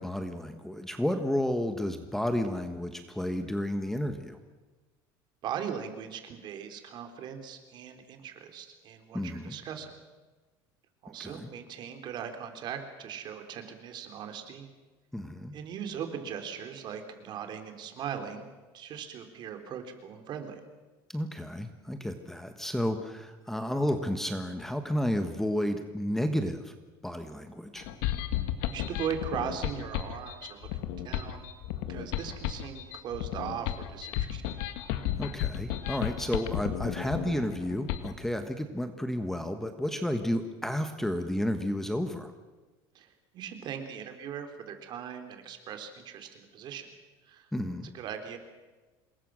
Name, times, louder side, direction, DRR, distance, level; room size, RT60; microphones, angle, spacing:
voice 1, 0.0-4.4 9.1-9.6 11.2-11.5 15.1-15.5 21.1-26.7 27.0-27.9 35.2-42.3 47.5-47.9, left 1 dB, 5° left, 7 dB, 1.4 m, -31 dB
voice 2, 5.4-9.9 11.0-14.7 15.5-18.5 18.7-20.6 28.7-30.7 31.0-31.4 31.9-34.4 43.0-46.9 47.2-47.5 47.9-48.4, right 8 dB, 45° right, 6 dB, 3.5 m, -39 dB
sound 1, 27.8-38.1, left 11 dB, 80° left, 1.9 m, -33 dB
27.0 x 21.5 x 6.4 m, 1.2 s
cardioid pair, 140°, 10 cm